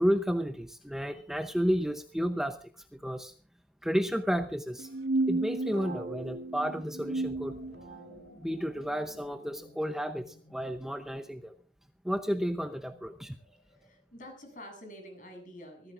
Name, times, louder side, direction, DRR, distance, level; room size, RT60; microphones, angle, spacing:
voice 1, 0.0-3.3 3.8-4.9 5.3-7.5 8.4-11.5 12.0-13.4, equal, ahead, 7 dB, 0.7 m, -32 dB
sound 1, 4.8-8.2, right 2 dB, 75° right, 2.0 m, -33 dB
sound 2, 6.9-11.5, left 1 dB, 75° left, 4.5 m, -54 dB
voice 2, 13.2-15.9, equal, 50° left, 4 dB, 7.7 m, -49 dB
25.0 x 15.0 x 2.5 m, 0.40 s
head